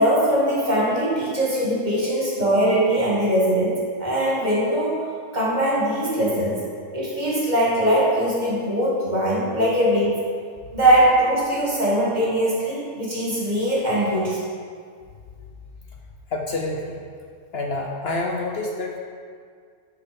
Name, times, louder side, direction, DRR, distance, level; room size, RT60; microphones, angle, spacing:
voice 1, 0.0-5.0 5.3-6.6 6.9-10.2 10.7-14.4, right 1 dB, 35° right, -6 dB, 2.3 m, -21 dB
voice 2, 16.3-17.0 17.5-19.0, left 2 dB, 60° left, 0 dB, 0.9 m, -27 dB
10.0 x 4.7 x 5.3 m, 2.1 s
omnidirectional pair, 1.3 m